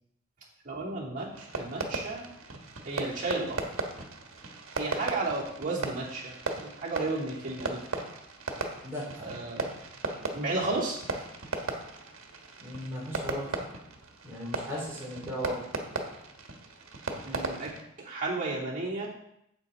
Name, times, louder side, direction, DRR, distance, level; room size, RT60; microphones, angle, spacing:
voice 1, 0.6-2.2 2.8-3.6 4.8-6.3 6.6-7.8 9.2-9.7 10.3-11.0 17.2-17.7 18.0-19.1, right 2 dB, 40° right, -5 dB, 2.7 m, -33 dB
Fireworks, 1.3-17.8, right 3 dB, 80° right, 1.4 m, -37 dB
voice 2, 8.8-9.2 12.6-13.4 14.2-15.5, equal, 15° right, -6 dB, 3.9 m, -36 dB
9.8 x 7.9 x 3.7 m, 0.77 s
head